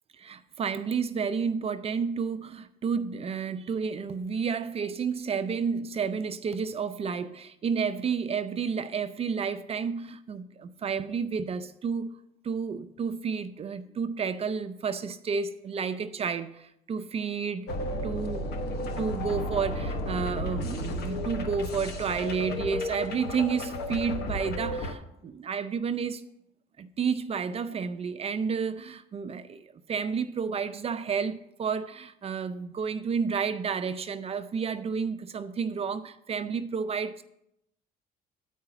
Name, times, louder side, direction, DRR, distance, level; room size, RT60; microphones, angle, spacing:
voice 1, 0.2-17.7 18.0-26.2 26.8-37.2, right 6 dB, 35° right, 0.5 m, -31 dB
sound 1, 17.7-24.9, left 1 dB, 75° left, 1.0 m, -33 dB
9.2 x 4.8 x 5.8 m
cardioid pair, 110°, 17 cm